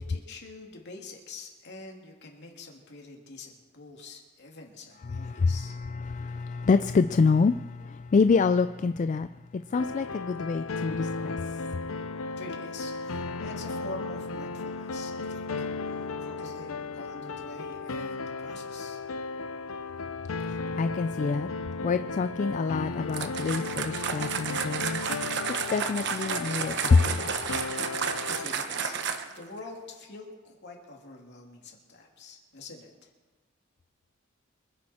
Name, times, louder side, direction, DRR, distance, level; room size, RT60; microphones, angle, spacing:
voice 1, 0.0-5.7 12.4-19.0 28.3-33.1, left 3 dB, 60° left, 2.6 m, -46 dB
voice 2, 5.1-11.3 20.4-21.5 21.8-25.0 25.5-27.2, left 4 dB, 35° left, 0.3 m, -26 dB
sound 1, 9.7-28.5, left 3 dB, 80° left, 0.6 m, -35 dB
sound 2, 23.1-29.4, right 6 dB, 60° right, 1.0 m, -32 dB
25.0 x 10.5 x 4.3 m
head